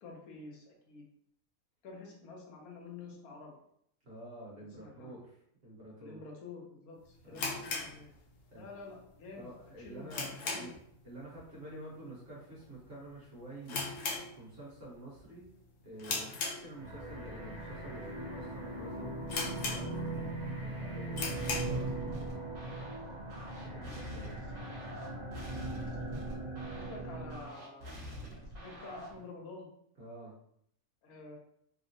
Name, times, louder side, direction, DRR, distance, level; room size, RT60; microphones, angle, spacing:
voice 1, 0.0-1.0 1.8-3.6 4.8-5.2 6.0-8.1 8.5-9.5 9.8-10.7 25.8-27.9 28.3-29.7 31.0-31.4, left 3 dB, 85° left, 0 dB, 1.2 m, -49 dB
voice 2, 4.0-6.2 7.2-7.5 8.5-8.7 9.4-10.7 11.0-13.8 14.3-15.4 15.8-22.4 23.4-24.4 30.0-30.3, right 1 dB, 45° right, -6 dB, 1.1 m, -49 dB
sound 1, 7.3-8.7 9.0-9.1 9.6-10.9 11.2-11.5 11.8-11.9 12.6-12.9 13.1-13.2 13.6-14.8 15.2-15.5 16.0-17.1 17.7-17.8 18.4-18.5 18.7-18.8 19.3-20.2 20.6-20.7 21.1-21.8, left 3 dB, 65° left, 0.9 m, -37 dB
sound 2, 16.7-27.5, right 2 dB, 25° right, 0.8 m, -40 dB
sound 3, 21.3-29.3, equal, 70° right, 1.4 m, -46 dB
3.6 x 2.0 x 2.6 m, 0.70 s
omnidirectional pair, 1.5 m